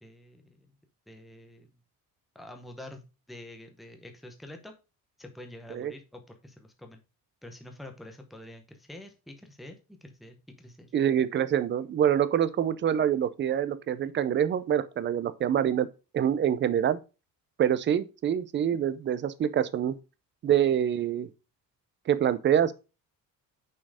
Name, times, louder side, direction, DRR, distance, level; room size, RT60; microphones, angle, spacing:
voice 1, 0.0-0.7 1.1-1.7 2.3-4.7 5.2-7.0 7.4-10.9, left 1 dB, ahead, 0.7 m, -47 dB
voice 2, 10.9-15.9 16.1-17.0 17.6-20.0 20.4-21.3 22.1-22.7, right 9 dB, 35° right, 0.5 m, -25 dB
6.1 x 4.4 x 4.8 m
cardioid pair, 160°, 34 cm